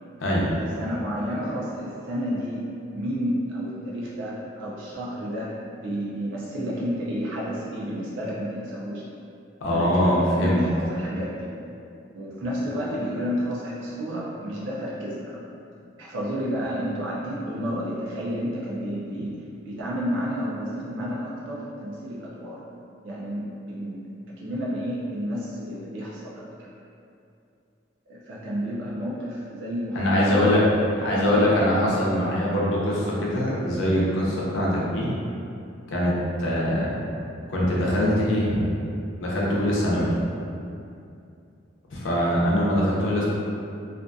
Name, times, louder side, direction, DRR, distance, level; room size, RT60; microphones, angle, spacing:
voice 1, 0.2-9.0 9.7-11.5 12.1-15.4 16.0-22.6 23.0-24.1 24.4-26.7 28.1-30.5 31.0-31.6, equal, 80° right, -6 dB, 0.4 m, -31 dB
voice 2, 9.6-10.7 29.9-30.6 31.0-35.1 35.9-36.1 36.4-37.0 37.5-38.7 39.2-40.1 41.9-43.2, left 1 dB, 90° left, -5 dB, 0.6 m, -22 dB
2.4 x 2.2 x 2.5 m, 2.5 s
head